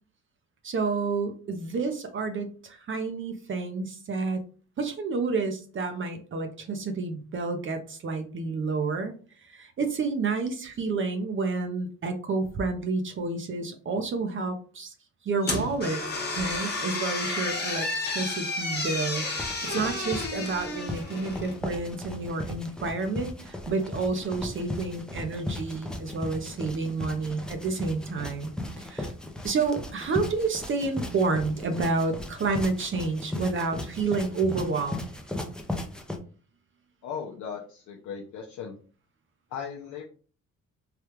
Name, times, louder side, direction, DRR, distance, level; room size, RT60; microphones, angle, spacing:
voice 1, 0.6-4.4 4.8-9.1 9.4-14.9 15.2-16.0 16.4-29.1 29.4-35.1, right 4 dB, 40° right, 6 dB, 0.6 m, -30 dB
sound 1, 15.4-21.6, left 2 dB, 35° left, 1.1 m, -31 dB
sound 2, 19.0-36.2, left 1 dB, 5° left, 0.5 m, -37 dB
voice 2, 37.0-38.8 39.5-40.0, left 7 dB, 75° left, 0 dB, 0.6 m, -37 dB
3.3 x 2.3 x 3.0 m, 0.40 s
cardioid pair, 90°, 30 cm